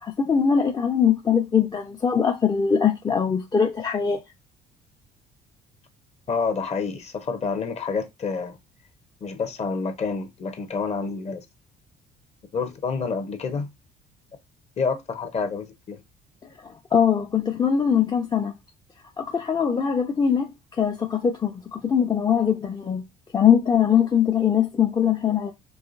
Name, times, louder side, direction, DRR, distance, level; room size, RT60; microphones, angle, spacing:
voice 1, 0.0-4.2 16.6-18.5 19.2-23.0 23.3-25.5, left 7 dB, 25° left, 0.6 m, -22 dB
voice 2, 6.3-8.6 9.2-11.4 12.5-13.7 14.8-16.0, left 5 dB, 40° left, 1.0 m, -28 dB
4.7 x 3.2 x 2.6 m
cardioid pair, 110°, 17 cm